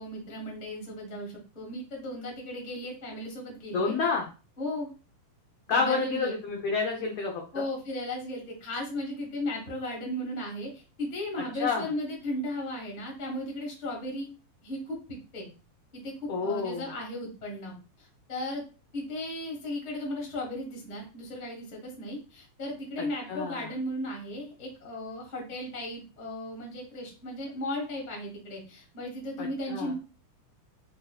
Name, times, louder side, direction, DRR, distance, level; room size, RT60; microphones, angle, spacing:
voice 1, 0.0-4.0 4.6-4.9 5.7-6.3 7.5-14.3 14.6-15.5 15.9-18.6 18.9-29.9, left 1 dB, 55° left, -2 dB, 0.5 m, -36 dB
voice 2, 3.7-4.3 5.7-7.6 11.6-11.9 16.3-16.9 23.0-23.7 29.4-29.9, left 4 dB, 85° left, 1 dB, 1.4 m, -29 dB
5.4 x 2.7 x 2.3 m, 0.34 s
omnidirectional pair, 3.6 m